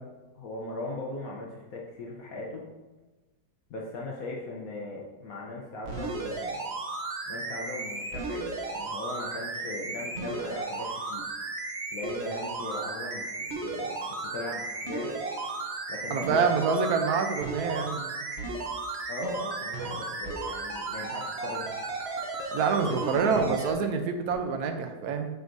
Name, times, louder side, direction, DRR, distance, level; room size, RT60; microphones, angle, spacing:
voice 1, 0.3-2.7 3.7-6.7 7.3-11.3 11.9-15.1 15.9-16.7 19.1-21.8 22.8-23.4, left 2 dB, 60° left, -2 dB, 1.1 m, -38 dB
sound 1, 5.8-23.7 24.3-24.4, right 3 dB, 50° right, 0.8 m, -34 dB
voice 2, 16.1-18.1 22.5-25.3, right 5 dB, 70° right, 6 dB, 1.1 m, -27 dB
7.9 x 4.7 x 2.6 m, 1.1 s
omnidirectional pair, 1.8 m